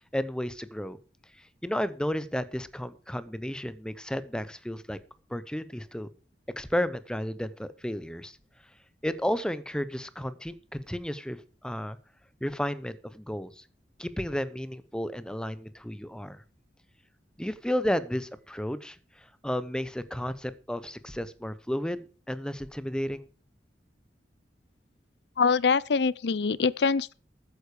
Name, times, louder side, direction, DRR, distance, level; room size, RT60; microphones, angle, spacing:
voice 1, 0.1-1.0 1.4-5.0 5.3-6.1 6.6-8.4 9.0-11.4 11.6-12.0 12.4-13.6 14.0-16.4 17.4-23.3, equal, 5° left, 0.8 m, -32 dB
voice 2, 25.4-27.1, left 5 dB, 70° left, 0.5 m, -24 dB
13.5 x 9.7 x 4.9 m
head